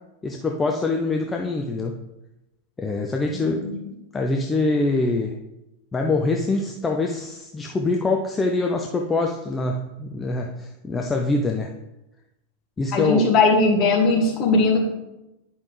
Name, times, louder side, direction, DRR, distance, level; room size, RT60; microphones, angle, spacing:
voice 1, 0.2-2.0 2.8-3.6 4.1-5.4 5.9-11.7 12.8-13.3, left 3 dB, 15° left, 2 dB, 0.6 m, -24 dB
voice 2, 3.3-3.7 12.9-14.8, left 3 dB, 35° left, 0 dB, 2.0 m, -19 dB
10.0 x 5.5 x 3.3 m, 0.94 s
figure-of-eight pair, 90°, 0 cm